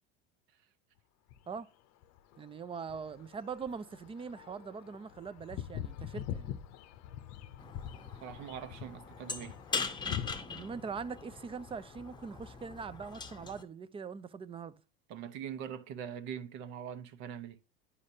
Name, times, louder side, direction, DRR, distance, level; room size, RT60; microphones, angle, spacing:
sound 1, 1.3-1.6 2.0-10.3, left 11 dB, 55° left, 0.7 m, -44 dB
voice 1, 2.4-6.6 10.5-14.7, right 5 dB, 15° right, 0.4 m, -42 dB
sound 2, 7.6-13.6, left 5 dB, 15° left, 0.8 m, -41 dB
voice 2, 8.2-9.6 15.1-17.6, right 8 dB, 60° right, 1.0 m, -42 dB
9.8 x 5.0 x 2.7 m
supercardioid pair, 105°, 32 cm